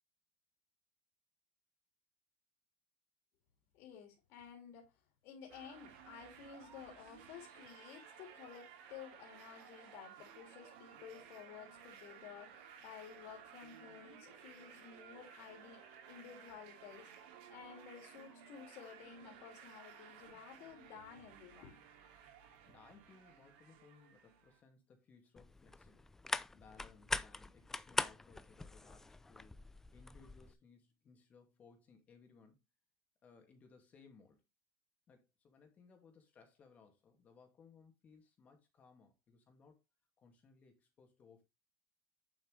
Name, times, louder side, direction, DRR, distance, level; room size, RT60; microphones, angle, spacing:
voice 1, 3.7-4.9 5.2-17.1 17.5-21.8, left 8 dB, 45° left, 3.1 m, -54 dB
Festival Acœstica, 5.5-24.6, right 8 dB, 65° right, 2.8 m, -57 dB
voice 2, 22.7-26.1 26.5-32.6 33.2-34.4 35.1-39.8 40.2-41.4, left 5 dB, 25° left, 2.4 m, -63 dB
sound 1, 25.4-30.5, left 2 dB, 5° left, 0.4 m, -42 dB
8.9 x 7.5 x 3.3 m
supercardioid pair, 155°, 6 cm